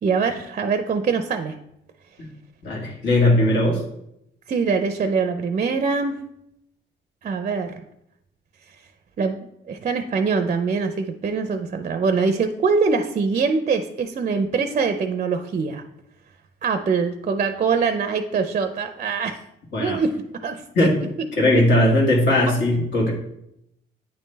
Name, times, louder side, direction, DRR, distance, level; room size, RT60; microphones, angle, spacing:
voice 1, 0.0-1.5 4.5-6.2 7.2-7.8 9.2-9.4 9.7-15.8 16.6-19.4 19.8-20.2 20.4-20.9, right 5 dB, 40° right, 8 dB, 0.5 m, -23 dB
voice 2, 2.6-3.8 19.7-20.0 20.7-20.9 21.4-23.1, left 1 dB, 65° left, -2 dB, 1.9 m, -19 dB
9.3 x 3.1 x 3.3 m, 0.78 s
cardioid pair, 90°, 20 cm